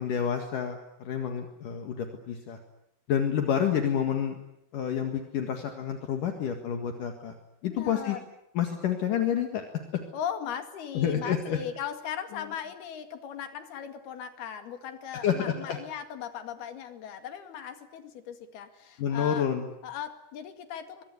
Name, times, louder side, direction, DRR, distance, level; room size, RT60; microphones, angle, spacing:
voice 1, 0.0-2.6 3.1-4.4 4.7-7.3 7.6-8.2 8.5-9.6 10.9-11.6 15.2-15.8 19.0-19.7, left 8 dB, 65° left, 5 dB, 3.3 m, -29 dB
voice 2, 7.6-8.2 10.1-19.5 19.8-21.0, left 9 dB, 85° left, 8 dB, 4.1 m, -38 dB
24.0 x 23.0 x 9.7 m, 0.81 s
omnidirectional pair, 4.4 m